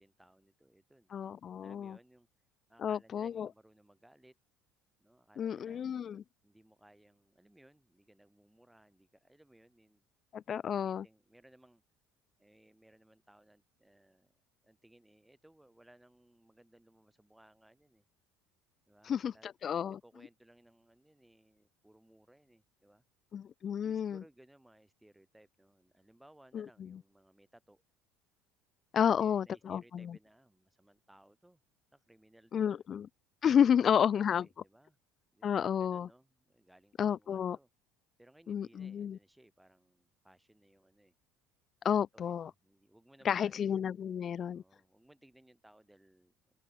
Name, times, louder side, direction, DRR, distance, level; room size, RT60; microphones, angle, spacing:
voice 1, 0.0-1.1 1.6-2.3 2.7-4.4 5.0-5.9 6.4-10.0 10.7-11.8 12.4-14.3 14.6-18.0 18.9-23.0 23.8-27.8 29.0-31.6 31.9-32.8 33.6-35.0 35.3-37.7 38.2-41.1 41.8-43.7 44.5-46.3, right 1 dB, 5° right, 5.5 m, -63 dB
voice 2, 1.1-2.0 2.8-3.5 5.4-6.2 10.3-11.0 19.1-20.0 23.3-24.2 26.5-26.7 28.9-30.1 32.5-33.1 33.4-34.4 35.4-36.1 37.0-37.6 38.5-39.2 41.8-42.5 43.2-44.6, left 8 dB, 40° left, 0.5 m, -31 dB
open air
supercardioid pair, 105°, 0 cm